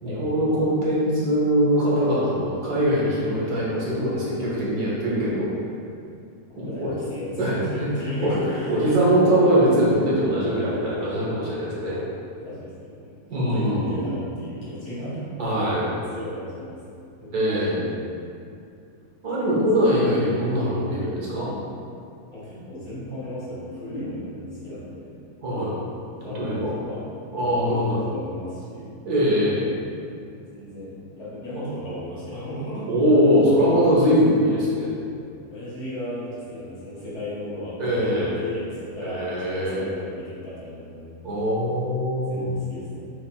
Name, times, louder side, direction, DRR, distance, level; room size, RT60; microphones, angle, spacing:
voice 1, 0.0-5.5 6.6-6.9 7.4-7.9 8.2-8.4 8.7-12.0 13.3-14.1 15.4-15.9 17.3-17.8 19.2-21.5 25.4-25.7 26.4-26.8 27.3-28.0 29.1-29.7 32.9-34.9 37.8-38.4 39.0-39.8 41.2-42.5, equal, 70° right, -7 dB, 1.7 m, -22 dB
voice 2, 6.5-8.8 12.4-15.3 16.1-16.8 17.2-17.9 20.8-20.9 22.3-25.1 26.2-28.9 30.5-32.9 33.7-33.9 35.4-41.2 42.3-43.0, equal, 45° left, -10 dB, 1.9 m, -35 dB
6.0 x 3.7 x 2.3 m, 2.4 s
omnidirectional pair, 1.7 m